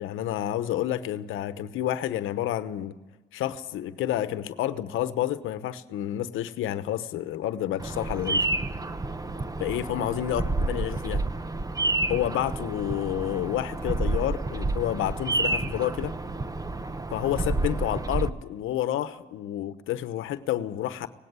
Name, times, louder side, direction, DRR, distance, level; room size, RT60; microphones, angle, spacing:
voice 1, 0.0-3.0 3.3-8.5 9.6-11.2 12.1-16.1 17.1-21.1, left 12 dB, 85° left, 13 dB, 1.0 m, -29 dB
Bird vocalization bird call bird song, 7.8-18.3, right 2 dB, 20° right, 0.9 m, -29 dB
18.5 x 16.5 x 9.5 m, 1.2 s
cardioid pair, 90°, 20 cm